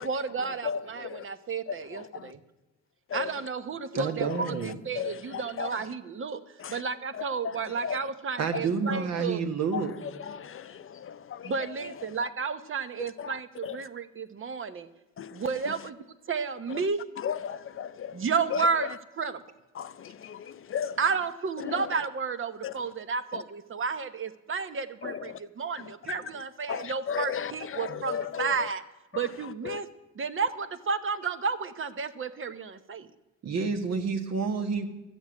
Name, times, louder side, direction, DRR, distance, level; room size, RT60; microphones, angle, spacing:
voice 1, 0.0-2.4 3.1-9.4 11.4-14.9 15.3-17.0 18.1-19.4 21.0-28.8 29.1-29.9 30.1-33.1, right 5 dB, 45° right, 1.0 m, -32 dB
voice 2, 0.6-1.2 1.9-2.3 3.1-3.3 5.0-5.7 6.6-6.8 7.8-8.0 9.7-9.8 10.2-11.5 13.2-13.3 13.6-13.8 15.2-15.4 17.2-18.2 18.5-18.6 19.8-21.0 21.7-21.8 22.6-22.7 23.3-23.4 25.0-25.4 26.7-28.7 29.6-29.8, left 8 dB, 45° left, 0.6 m, -35 dB
voice 3, 3.9-4.8 8.4-9.9 27.9-28.0 33.4-34.9, right 5 dB, 60° right, 1.6 m, -29 dB
13.0 x 7.1 x 9.4 m
cardioid pair, 90°, 30 cm